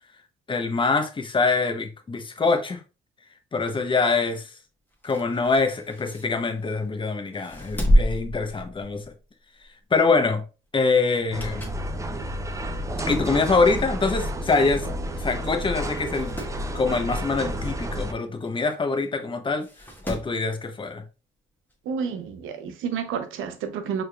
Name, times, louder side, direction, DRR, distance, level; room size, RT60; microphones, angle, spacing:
voice 1, 0.5-2.8 3.5-4.5 5.0-9.0 9.9-10.4 10.7-11.7 13.1-14.9 15.2-16.3 16.7-19.7 20.0-21.0, left 4 dB, 25° left, 0.7 m, -24 dB
sound 1, 4.9-6.9 7.3-9.2 9.6-9.8 11.1-11.9 12.4-12.5 13.4-13.5 13.7-13.8 14.0-14.1 14.9-15.1 15.4-15.5 15.9-16.6 18.5-18.6 19.6-20.4 21.7-21.8, equal, 10° left, 1.2 m, -28 dB
sound 2, 11.3-18.1, equal, 15° right, 0.5 m, -31 dB
voice 2, 21.9-24.0, right 6 dB, 85° right, 0.7 m, -30 dB
4.3 x 3.3 x 2.3 m
cardioid pair, 90°, 20 cm